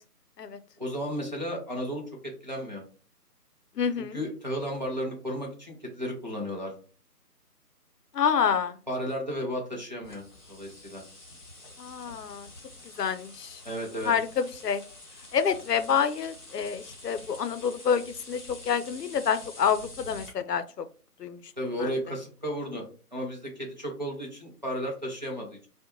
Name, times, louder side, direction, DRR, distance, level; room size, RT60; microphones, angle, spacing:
voice 1, 0.8-2.8 4.1-6.7 8.9-11.0 13.6-14.1 21.6-22.8 23.1-25.7, equal, 30° right, -1 dB, 0.5 m, -34 dB
voice 2, 3.8-4.2 8.1-8.8 11.8-12.5 13.0-13.6 14.0-14.8 15.3-20.9 21.2-21.4 21.8-21.9, left 7 dB, 85° left, 11 dB, 0.5 m, -28 dB
sound 1, 10.0-20.3, left 2 dB, 30° left, 1.1 m, -47 dB
2.4 x 2.2 x 2.9 m, 0.38 s
figure-of-eight pair, 155°, 47 cm